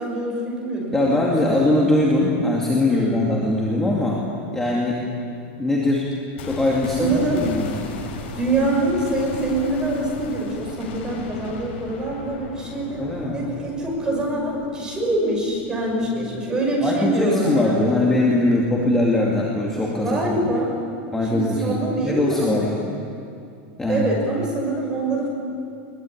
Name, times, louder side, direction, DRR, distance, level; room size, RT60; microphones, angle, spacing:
voice 1, 0.0-1.6 2.9-3.3 7.0-7.4 8.3-13.1 13.3-17.8 20.0-20.7 21.3-22.7 23.9-25.3, right 1 dB, 10° right, -1 dB, 5.9 m, -24 dB
voice 2, 0.9-4.2 4.5-5.0 5.6-6.1 6.4-7.8 13.0-13.4 16.8-20.2 21.1-22.7 23.8-24.1, left 2 dB, 5° left, -4 dB, 2.5 m, -21 dB
sound 1, 6.4-16.4 16.7-16.8, left 4 dB, 75° left, 7.2 m, -36 dB
22.0 x 21.5 x 10.0 m, 2.5 s
supercardioid pair, 170°, 6 cm